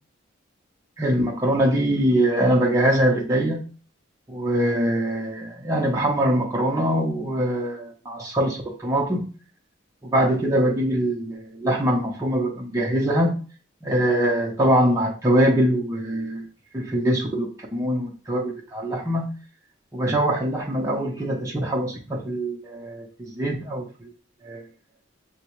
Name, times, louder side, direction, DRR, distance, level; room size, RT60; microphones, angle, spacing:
voice 1, 1.0-3.6 4.3-9.3 10.0-13.4 13.8-16.4 16.7-19.3 19.9-24.1 24.4-24.6, right 1 dB, 15° right, -2 dB, 0.6 m, -23 dB
6.0 x 2.2 x 3.0 m, 0.36 s
head